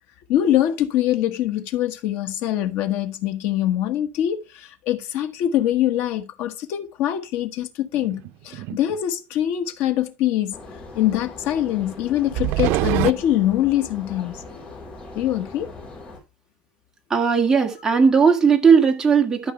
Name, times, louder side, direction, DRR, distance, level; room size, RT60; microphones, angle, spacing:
voice 1, 0.3-10.5 10.9-14.4 15.1-15.7, left 12 dB, 80° left, 1.3 m, -23 dB
sound 1, 8.0-9.0 12.3-13.1, right 16 dB, 80° right, 0.5 m, -23 dB
sound 2, 10.5-16.2, left 2 dB, 25° left, 3.8 m, -40 dB
voice 2, 17.1-19.5, right 6 dB, 15° right, 1.8 m, -17 dB
12.5 x 5.3 x 3.3 m
cardioid pair, 160°, 4 cm